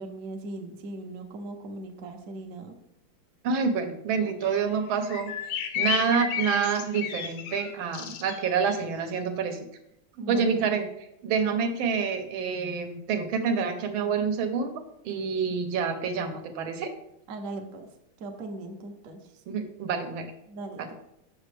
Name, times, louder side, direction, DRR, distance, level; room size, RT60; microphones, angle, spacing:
voice 1, 0.0-2.8 4.2-4.4 10.2-10.6 17.3-17.9 18.2-19.2 20.5-20.9, right 2 dB, 60° right, 4 dB, 0.9 m, -39 dB
voice 2, 3.4-9.6 10.2-10.9 11.2-14.7 15.0-16.9 19.5-20.3 20.8-20.9, right 6 dB, 80° right, 6 dB, 1.6 m, -27 dB
sound 1, 4.4-4.5 4.7-4.8 5.0-8.7, left 8 dB, 80° left, 1.5 m, -32 dB
6.2 x 5.9 x 3.3 m, 0.80 s
omnidirectional pair, 2.2 m